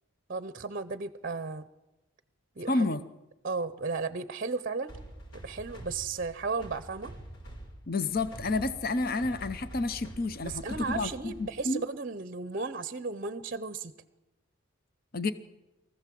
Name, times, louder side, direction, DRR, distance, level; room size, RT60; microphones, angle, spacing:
voice 1, 0.3-1.6 2.6-2.9 3.4-4.9 5.4-7.1 10.4-13.9, right 4 dB, 40° right, 14 dB, 0.6 m, -34 dB
voice 2, 2.7-3.0 7.9-11.8 15.1-15.3, left 2 dB, 45° left, 12 dB, 0.8 m, -30 dB
sound 1, 4.9-11.7, right 1 dB, 70° left, 5.3 m, -46 dB
23.5 x 15.0 x 7.6 m, 1.0 s
head